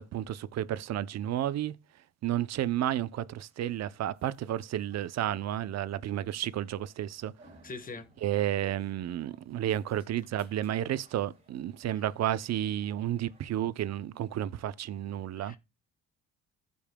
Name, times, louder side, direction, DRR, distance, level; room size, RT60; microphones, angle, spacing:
voice 1, 0.0-1.7 2.2-7.3 8.2-15.6, right 12 dB, 60° right, 0.6 m, -32 dB
sound 1, 3.7-13.9, right 2 dB, 20° right, 4.6 m, -63 dB
voice 2, 7.6-8.1 11.9-12.0 15.4-15.6, left 3 dB, 30° left, 1.2 m, -42 dB
15.0 x 5.4 x 2.2 m
cardioid pair, 90°, 30 cm